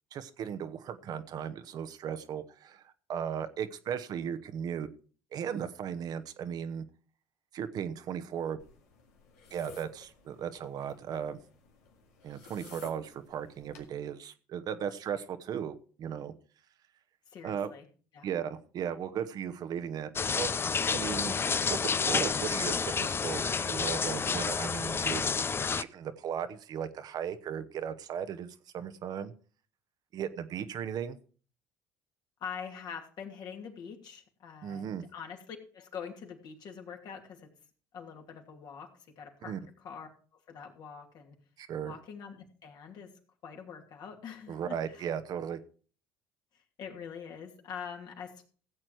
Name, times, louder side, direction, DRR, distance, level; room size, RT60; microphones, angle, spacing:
voice 1, 0.1-4.9 5.3-6.8 7.5-8.6 9.5-11.4 12.2-16.3 17.4-17.7 18.2-20.5 20.9-21.3 21.6-25.2 25.7-29.3 30.1-31.2 34.6-35.0 39.4-39.6 41.6-42.0 44.5-45.6, right 8 dB, 55° right, 11 dB, 1.0 m, -36 dB
sound 1, 8.6-13.9, left 4 dB, 90° left, 2.2 m, -54 dB
voice 2, 17.3-17.9 18.1-18.3 32.4-37.5 37.9-38.9 39.2-41.4 41.8-43.1 43.4-45.1 46.5-48.5, left 7 dB, 60° left, 2 dB, 2.6 m, -44 dB
sound 2, 20.2-25.8, left 5 dB, 30° left, 0.5 m, -30 dB
15.5 x 7.6 x 4.7 m, 0.40 s
supercardioid pair, 70°, 8 cm